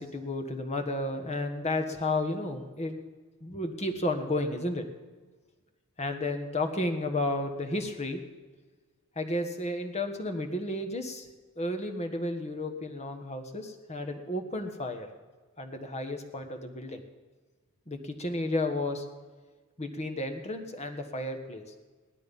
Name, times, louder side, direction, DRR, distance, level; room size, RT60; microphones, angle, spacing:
voice 1, 0.0-2.9 3.4-4.8 6.0-8.2 9.1-11.3 11.6-15.1 15.6-17.0 17.9-19.0 19.8-21.6, left 1 dB, 30° left, 6 dB, 1.4 m, -32 dB
17.5 x 12.0 x 5.4 m, 1.4 s
head